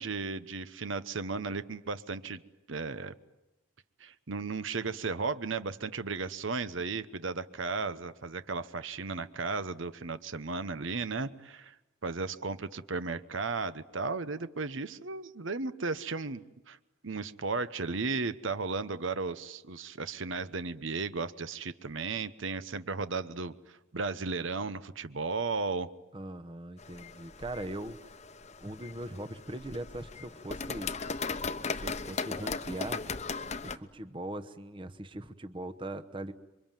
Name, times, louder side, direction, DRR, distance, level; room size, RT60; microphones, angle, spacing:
voice 1, 0.0-2.4 2.7-3.1 4.0-11.7 12.0-16.8 17.0-25.9, right 4 dB, 70° right, 13 dB, 0.9 m, -35 dB
voice 2, 26.1-28.1 28.6-30.9 31.7-33.0 33.6-36.3, right 1 dB, 25° right, 10 dB, 0.9 m, -40 dB
sound 1, 26.8-33.8, left 4 dB, 35° left, 0.9 m, -38 dB
27.5 x 24.0 x 9.1 m, 0.96 s
head